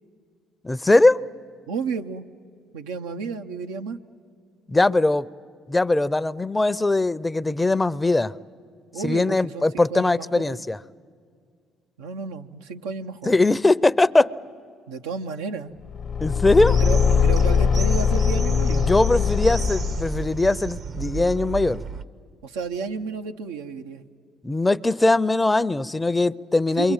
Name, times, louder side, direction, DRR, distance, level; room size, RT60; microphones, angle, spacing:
voice 1, 0.6-1.2 4.7-5.3 5.7-8.3 9.0-10.8 13.3-14.3 16.2-16.8 18.7-21.8 24.4-26.9, left 2 dB, 15° left, 0.6 m, -20 dB
voice 2, 1.7-2.3 2.7-4.0 8.9-10.5 12.0-13.3 14.9-15.7 16.8-18.9 22.4-24.0 26.8-26.9, right 5 dB, 90° right, 0.8 m, -32 dB
Car / Engine, 15.9-20.4, left 6 dB, 55° left, 0.9 m, -21 dB
sound 1, 16.5-22.1, right 5 dB, 55° right, 0.8 m, -33 dB
28.0 x 23.5 x 9.0 m
supercardioid pair, 65°, 0 cm